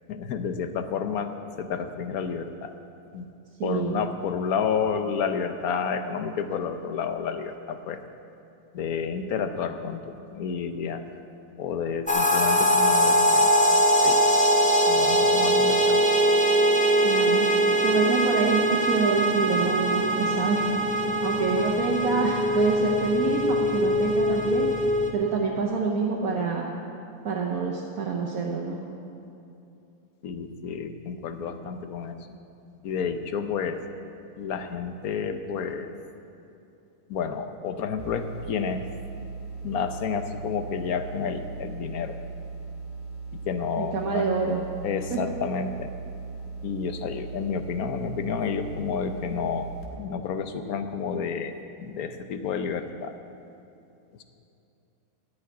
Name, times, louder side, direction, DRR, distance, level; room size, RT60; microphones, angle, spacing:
voice 1, 0.1-1.3 1.6-2.7 3.1-3.3 3.6-8.0 8.7-11.0 11.6-13.5 14.0-14.2 14.9-16.1 30.2-32.4 32.8-33.8 34.4-35.9 37.1-38.9 39.6-42.2 43.3-44.3 44.8-45.9 46.6-49.7 50.0-53.1 54.1-54.2, left 6 dB, 85° left, 8 dB, 1.3 m, -30 dB
voice 2, 3.6-4.0 17.0-17.5 17.8-20.6 21.2-24.7 25.1-26.7 27.2-28.8 43.8-44.6 45.1-45.2, right 5 dB, 80° right, -2 dB, 1.5 m, -27 dB
sound 1, 12.1-25.1, equal, 5° left, 0.8 m, -22 dB
sound 2, 38.0-49.8, right 4 dB, 60° left, 1.9 m, -38 dB
13.5 x 5.7 x 9.3 m, 2.8 s
omnidirectional pair, 1.5 m